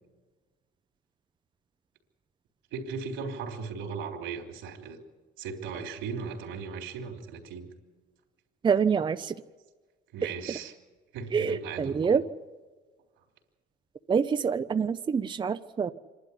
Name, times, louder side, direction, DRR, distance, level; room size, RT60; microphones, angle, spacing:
voice 1, 2.7-5.0 5.4-7.7 10.1-10.7 11.1-12.2, right 5 dB, 85° right, 4 dB, 3.5 m, -37 dB
voice 2, 8.6-9.3 11.3-12.2 14.1-15.9, right 6 dB, 25° right, 10 dB, 0.6 m, -26 dB
26.0 x 11.5 x 10.0 m, 1.4 s
cardioid pair, 105°, 19 cm